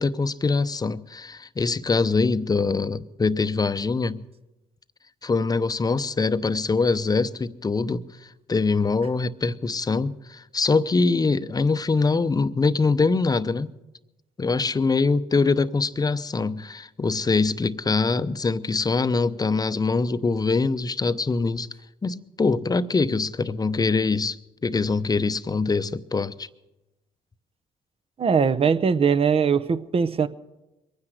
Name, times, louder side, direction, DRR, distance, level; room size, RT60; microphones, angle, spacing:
voice 1, 0.0-4.2 5.2-13.7 14.4-21.7 22.0-24.4 24.6-26.5, left 4 dB, 25° left, 0.7 m, -23 dB
voice 2, 28.2-30.3, right 6 dB, 45° right, 0.8 m, -21 dB
22.5 x 9.7 x 6.5 m
supercardioid pair, 65°, 14 cm